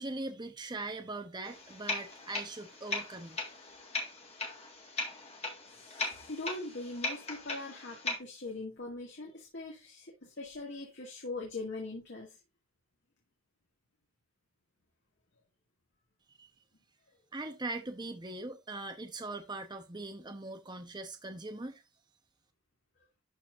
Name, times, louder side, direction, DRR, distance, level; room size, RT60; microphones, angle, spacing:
voice 1, 0.0-3.4 16.3-16.5 17.3-21.8, right 2 dB, 20° right, 0.9 m, -41 dB
sound 1, 1.4-8.2, left 3 dB, 30° left, 1.8 m, -39 dB
voice 2, 5.7-12.4, left 2 dB, 55° left, 2.1 m, -41 dB
12.0 x 4.2 x 2.5 m
head